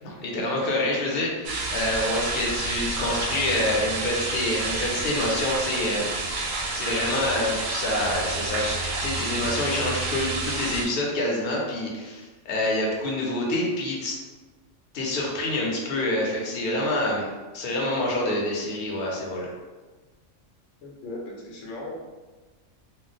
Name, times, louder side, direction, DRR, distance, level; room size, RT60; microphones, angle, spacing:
voice 1, 0.0-6.1 6.7-14.2 14.9-17.3 17.5-19.5, left 1 dB, 55° left, -2 dB, 0.8 m, -27 dB
sound 1, 1.4-10.8, right 3 dB, 60° right, 0.6 m, -29 dB
voice 2, 20.8-21.9, left 2 dB, 80° left, -3 dB, 1.0 m, -37 dB
2.4 x 2.0 x 3.8 m, 1.3 s
omnidirectional pair, 1.3 m